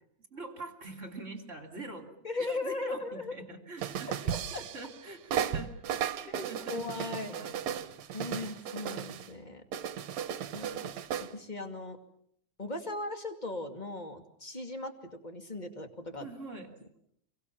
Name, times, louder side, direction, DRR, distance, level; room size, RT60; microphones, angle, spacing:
voice 1, 0.3-2.1 2.4-6.8 7.3-7.9 16.2-16.7, right 2 dB, 25° right, 5 dB, 3.1 m, -44 dB
voice 2, 2.2-3.4 4.3-4.6 6.3-7.4 8.1-9.6 10.5-10.9 11.2-12.0 12.6-14.9 15.2-16.3, left 2 dB, 15° left, 6 dB, 2.0 m, -38 dB
sound 1, 3.8-5.0 5.3-9.3 9.7-11.3, right 9 dB, 65° right, 2.3 m, -35 dB
28.0 x 23.5 x 7.3 m, 0.70 s
omnidirectional pair, 3.5 m